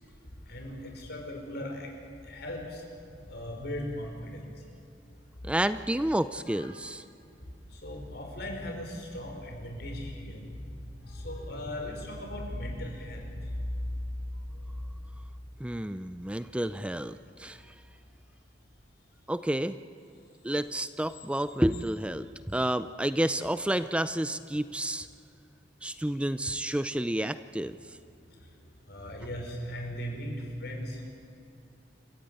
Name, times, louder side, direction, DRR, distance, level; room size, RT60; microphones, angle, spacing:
voice 1, 0.5-1.9 2.2-2.8 3.3-4.4 5.4-5.5 6.5-6.7 7.7-10.7 11.0-13.6 26.5-26.7 28.9-30.3 30.6-31.1, left 1 dB, 65° left, 2 dB, 5.4 m, -38 dB
voice 2, 5.4-7.0 15.6-17.6 19.3-19.8 20.4-25.1 25.8-27.7, right 1 dB, 5° right, 13 dB, 0.4 m, -30 dB
28.5 x 15.0 x 9.1 m, 2.6 s
head